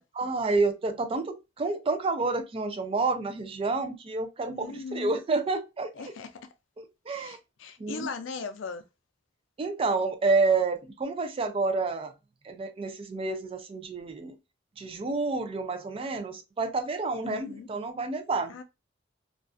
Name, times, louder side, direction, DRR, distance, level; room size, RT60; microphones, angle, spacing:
voice 1, 0.2-6.1 6.8-7.4 7.8-8.1 9.6-12.1 12.4-14.4 14.8-18.5, right 3 dB, 30° right, 0.3 m, -29 dB
voice 2, 4.5-5.2 6.0-6.3 7.1-8.8 17.2-17.7 18.5-18.6, left 4 dB, 80° left, 0.4 m, -39 dB
2.4 x 2.3 x 2.3 m
head